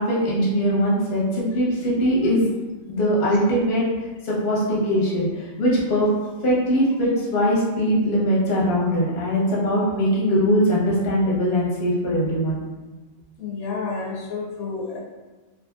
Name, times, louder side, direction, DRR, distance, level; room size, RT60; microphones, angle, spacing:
voice 1, 0.0-2.4 2.9-3.8 4.2-6.1 6.4-12.6, equal, 50° left, -5 dB, 0.9 m, -21 dB
voice 2, 13.4-15.0, left 4 dB, 80° left, -3 dB, 1.0 m, -30 dB
2.7 x 2.7 x 2.2 m, 1.2 s
omnidirectional pair, 1.5 m